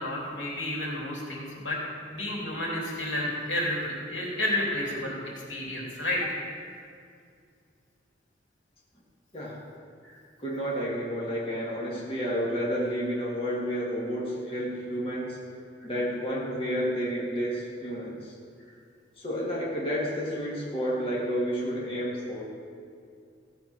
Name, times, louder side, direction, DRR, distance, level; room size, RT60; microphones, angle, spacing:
voice 1, 0.0-1.8 2.1-6.4 10.0-10.1, left 1 dB, 80° left, -3 dB, 3.3 m, -31 dB
voice 2, 9.3-9.6 10.4-15.4 15.8-18.3 19.2-22.4, equal, 30° left, -5 dB, 1.9 m, -30 dB
15.5 x 7.0 x 6.0 m, 2.3 s
head